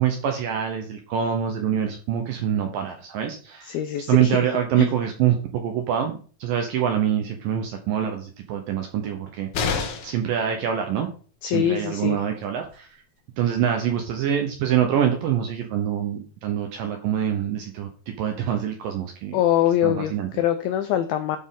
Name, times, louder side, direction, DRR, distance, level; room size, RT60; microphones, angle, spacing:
voice 1, 0.0-3.8 4.1-9.8 10.0-11.1 11.4-12.9 13.4-19.4 19.8-20.3, right 9 dB, 75° right, 3 dB, 2.1 m, -25 dB
voice 2, 3.7-4.4 4.8-4.9 11.4-12.2 19.3-21.4, left 11 dB, 90° left, 9 dB, 2.1 m, -23 dB
sound 1, 9.5-10.3 12.2-12.3 12.6-12.7, left 5 dB, 70° left, 3.0 m, -27 dB
12.0 x 4.3 x 3.7 m, 0.41 s
omnidirectional pair, 5.0 m